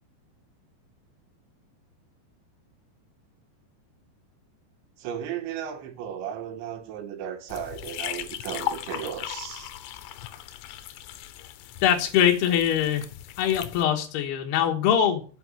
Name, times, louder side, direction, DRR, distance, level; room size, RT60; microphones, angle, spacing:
voice 1, 5.0-9.7, right 9 dB, 85° right, 3.8 m, -35 dB
sound 1, 7.5-13.8, left 13 dB, 90° left, 3.0 m, -37 dB
voice 2, 11.8-13.1 13.4-15.3, left 9 dB, 70° left, 3.2 m, -22 dB
9.8 x 7.3 x 6.1 m
omnidirectional pair, 5.1 m